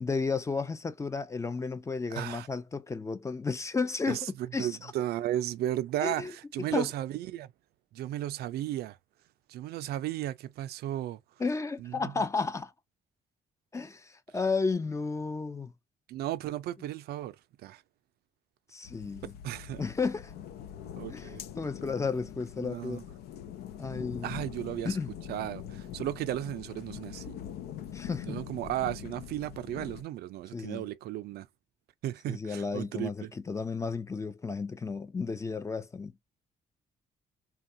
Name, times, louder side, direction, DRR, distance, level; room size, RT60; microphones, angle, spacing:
voice 1, 0.0-4.3 4.5-4.9 6.0-6.3 6.7-6.9 11.4-12.7 13.7-15.7 18.7-19.3 19.8-20.3 21.1-23.0 23.8-24.3 24.8-25.1 27.9-28.4 30.5-30.9 32.3-36.1, left 4 dB, 20° left, 0.4 m, -33 dB
voice 2, 2.1-2.5 4.1-7.5 7.9-9.0 9.5-11.2 11.8-12.2 16.1-17.4 17.6-17.8 19.4-19.8 21.0-21.4 22.6-23.0 24.2-25.0 25.3-27.4 28.3-31.5 32.0-33.3, right 13 dB, 85° right, 0.4 m, -35 dB
sound 1, 18.8-30.0, left 9 dB, 85° left, 0.5 m, -43 dB
3.4 x 2.3 x 2.6 m
cardioid pair, 135°, 16 cm